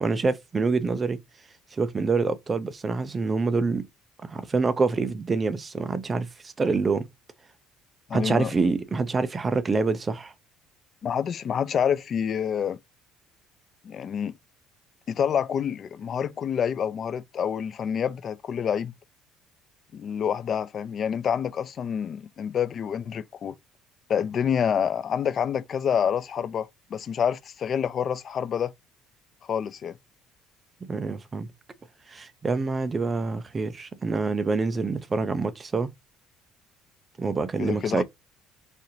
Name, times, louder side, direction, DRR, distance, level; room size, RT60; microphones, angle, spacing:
voice 1, 0.0-1.2 1.7-3.8 4.3-7.1 8.1-10.3 30.9-31.5 32.1-35.9 37.2-38.0, right 4 dB, 20° right, 0.4 m, -26 dB
voice 2, 8.1-8.5 11.0-12.8 13.8-14.3 15.1-18.9 19.9-23.6 24.1-28.7 29.5-30.0 37.6-38.0, left 8 dB, 40° left, 0.3 m, -27 dB
4.2 x 2.5 x 2.7 m
cardioid pair, 135°, 0 cm